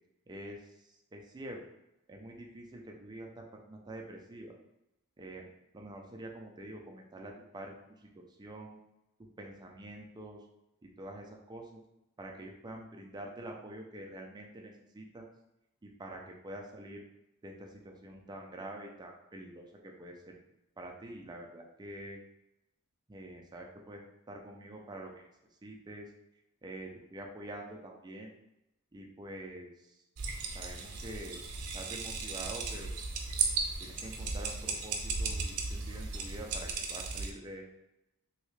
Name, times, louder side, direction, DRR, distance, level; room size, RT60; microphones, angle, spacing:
voice 1, 0.3-1.6 2.1-4.5 5.2-5.5 5.7-8.8 9.4-10.5 10.8-11.8 12.2-15.3 15.8-17.0 17.4-20.4 20.8-22.2 23.1-24.0 24.3-25.3 25.6-26.1 26.6-28.3 28.9-30.0 30.5-31.4 31.7-32.9 33.8-37.7, right 1 dB, 20° right, 1 dB, 0.4 m, -46 dB
sound 1, 30.2-37.3, right 4 dB, 80° right, 0.6 m, -36 dB
3.2 x 2.8 x 3.1 m, 0.88 s
head